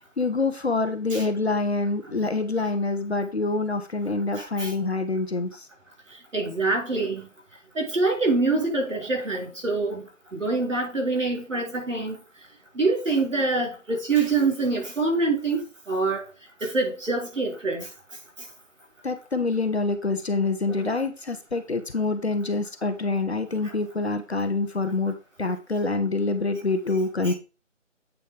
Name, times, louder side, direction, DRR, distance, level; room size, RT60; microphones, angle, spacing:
voice 1, 0.2-5.7 19.0-25.1 25.4-27.3, left 3 dB, 55° left, 1.3 m, -26 dB
voice 2, 4.4-4.7 6.3-7.3 7.8-10.0 10.3-12.2 12.8-16.2 16.6-17.9 20.7-20.8 27.2-27.3, right 3 dB, 70° right, 5.3 m, -25 dB
8.6 x 4.3 x 5.1 m
figure-of-eight pair, 180°, 38 cm